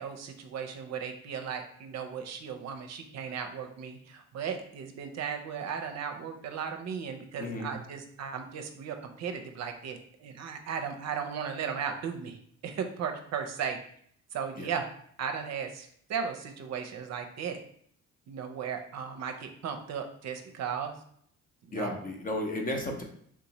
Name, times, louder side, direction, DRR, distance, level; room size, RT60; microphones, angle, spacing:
voice 1, 0.0-13.8 14.3-14.9 15.2-17.6 18.3-20.9 21.7-22.0, right 7 dB, 60° right, 5 dB, 0.5 m, -36 dB
voice 2, 7.4-7.7 14.6-14.7 21.7-23.0, left 1 dB, 30° left, 3 dB, 0.7 m, -33 dB
3.6 x 2.7 x 2.9 m, 0.64 s
cardioid pair, 90°, 30 cm